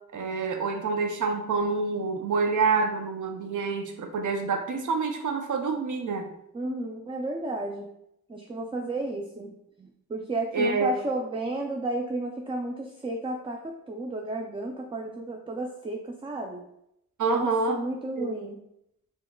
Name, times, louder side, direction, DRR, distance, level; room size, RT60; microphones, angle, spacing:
voice 1, 0.1-6.3 10.5-10.9 17.2-17.8 18.2-18.3, right 4 dB, 70° right, 5 dB, 0.6 m, -27 dB
voice 2, 6.5-7.9 8.3-16.6 17.3-18.6, right 2 dB, 15° right, 2 dB, 0.3 m, -33 dB
4.6 x 2.9 x 2.2 m, 0.80 s
wide cardioid pair, 90°, 32 cm